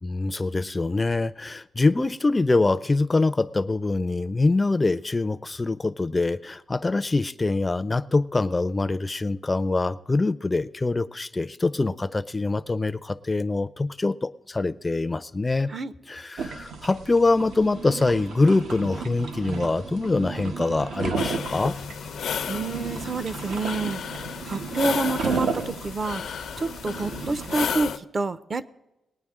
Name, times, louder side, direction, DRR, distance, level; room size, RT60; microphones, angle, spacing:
voice 1, 0.0-15.7 16.1-21.8, left 3 dB, 20° left, 15 dB, 0.4 m, -24 dB
sound 1, 16.4-27.8, right 5 dB, 85° right, 1.0 m, -34 dB
sound 2, 21.2-28.0, left 7 dB, 70° left, 0.5 m, -33 dB
voice 2, 22.5-24.0 24.4-26.2 26.6-28.6, right 3 dB, 35° right, 15 dB, 0.6 m, -28 dB
21.0 x 9.3 x 3.6 m, 0.96 s
cardioid pair, 125°, 0 cm